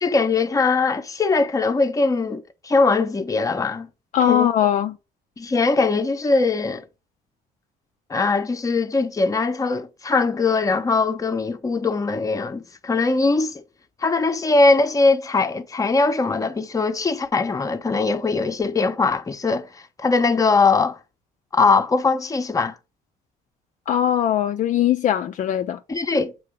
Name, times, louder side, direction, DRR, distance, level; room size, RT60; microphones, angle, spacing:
voice 1, 0.0-3.9 4.3-4.5 5.4-6.8 8.1-13.6 14.0-21.0 21.5-22.7 25.9-26.4, left 3 dB, 20° left, 0.8 m, -21 dB
voice 2, 4.1-5.0 23.9-25.8, left 10 dB, 50° left, 0.4 m, -20 dB
7.6 x 2.8 x 4.9 m
cardioid pair, 110°, 17 cm